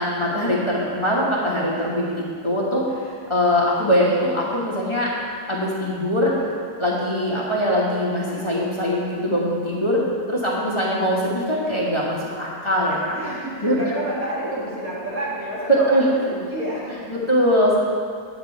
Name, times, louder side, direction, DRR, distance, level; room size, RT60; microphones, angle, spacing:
voice 1, 0.0-5.1 5.5-6.3 6.8-10.0 10.3-13.2 13.6-13.9 15.7-16.1 17.1-17.8, equal, 20° left, -6 dB, 1.3 m, -22 dB
voice 2, 13.1-17.1, right 1 dB, 85° right, -7 dB, 3.0 m, -29 dB
9.3 x 8.2 x 4.6 m, 2.1 s
omnidirectional pair, 1.5 m